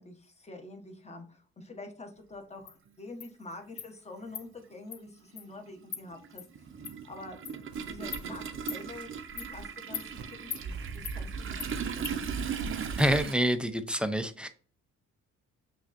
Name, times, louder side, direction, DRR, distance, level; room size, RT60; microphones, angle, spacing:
voice 1, 0.0-7.4 7.9-9.1 9.3-12.2, left 2 dB, 20° left, 4 dB, 0.9 m, -46 dB
Insect, 2.7-2.8 3.2-3.3 3.8-3.9 4.3-4.5 4.9-5.0 5.4-5.5 5.9-6.0 6.4-6.5 6.8-6.9 7.4-7.6 8.1-8.2 8.7-8.8 9.4-9.5 9.9-10.1 10.5-10.6 11.0-11.2 11.6-11.7 12.0-12.2, left 9 dB, 50° left, 0.5 m, -39 dB
Toilet flush, 2.9-3.0 4.2-4.4 4.7-13.3, right 7 dB, 45° right, 0.6 m, -39 dB
sound 1, 7.7-13.2, right 4 dB, 70° right, 0.8 m, -41 dB
voice 2, 13.0-14.5, equal, 5° right, 8 dB, 0.4 m, -27 dB
5.9 x 2.4 x 2.5 m, 0.43 s
cardioid pair, 90°, 30 cm